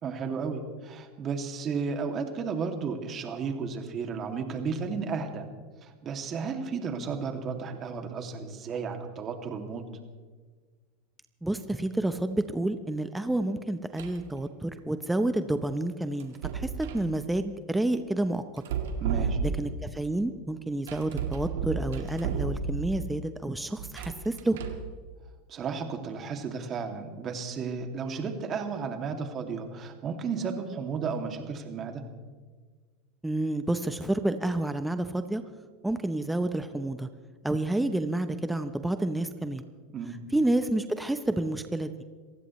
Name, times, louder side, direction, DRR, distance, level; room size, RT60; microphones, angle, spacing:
voice 1, 0.0-5.5 5.8-9.8 19.0-19.4 25.5-32.0 39.9-40.2, right 5 dB, 35° right, 4 dB, 2.5 m, -33 dB
voice 2, 11.4-18.6 19.6-24.6 33.2-35.4 35.8-37.1 37.4-39.6 40.3-41.9, right 1 dB, 5° right, 9 dB, 0.8 m, -29 dB
sound 1, 14.0-14.3 16.2-17.1 18.6-19.9 20.9-23.1 23.8-24.9, right 6 dB, 80° right, 1.9 m, -32 dB
27.5 x 15.5 x 3.2 m, 1.5 s
supercardioid pair, 110°, 0 cm